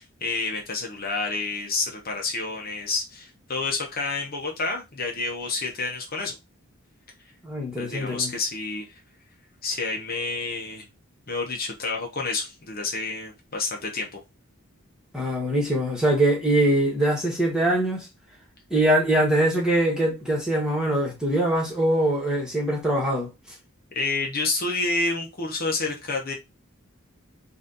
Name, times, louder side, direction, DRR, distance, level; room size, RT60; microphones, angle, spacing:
voice 1, 0.0-6.4 7.8-9.0 9.6-10.9 11.3-14.2 23.9-26.3, left 3 dB, 45° left, 0.9 m, -29 dB
voice 2, 7.4-8.3 15.1-18.1 18.7-23.3, right 1 dB, 5° right, 1.4 m, -23 dB
4.0 x 2.6 x 3.9 m
head